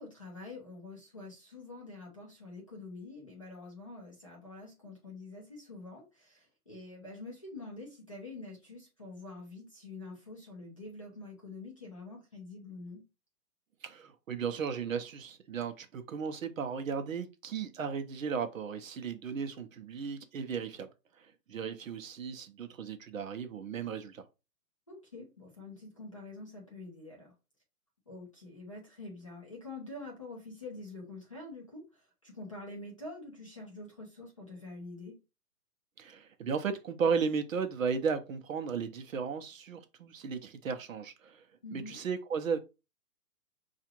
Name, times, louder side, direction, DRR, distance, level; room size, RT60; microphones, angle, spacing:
voice 1, 0.0-13.0 24.9-27.3 28.1-35.2 41.6-42.0, left 2 dB, 20° left, 0.5 m, -46 dB
voice 2, 13.8-20.9 21.2-24.2 36.0-41.4 41.7-42.6, right 6 dB, 60° right, 0.7 m, -35 dB
5.7 x 2.4 x 2.8 m
hypercardioid pair, 170°, 46 cm